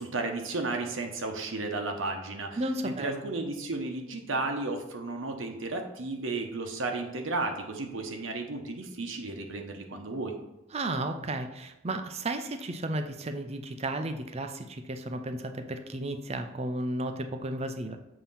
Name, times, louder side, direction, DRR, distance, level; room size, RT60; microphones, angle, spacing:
voice 1, 0.0-2.6 2.8-10.4, right 3 dB, 85° right, 4 dB, 0.9 m, -33 dB
voice 2, 2.6-3.2 10.7-18.0, right 1 dB, 30° right, 7 dB, 0.5 m, -33 dB
7.3 x 2.9 x 5.5 m, 0.90 s
head